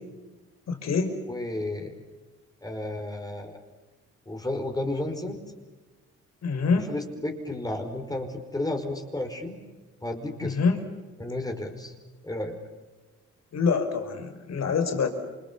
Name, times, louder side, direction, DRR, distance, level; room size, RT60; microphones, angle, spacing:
voice 1, 0.7-1.1 6.4-6.9 10.4-10.8 13.5-15.1, left 5 dB, 60° left, 7 dB, 5.6 m, -25 dB
voice 2, 1.3-1.9 2.6-3.6 4.3-5.4 6.7-9.6 10.0-10.6 11.2-11.9 12.2-12.6, left 1 dB, 10° left, 4 dB, 5.3 m, -32 dB
29.0 x 25.5 x 7.2 m, 1.2 s
cardioid pair, 90°, 30 cm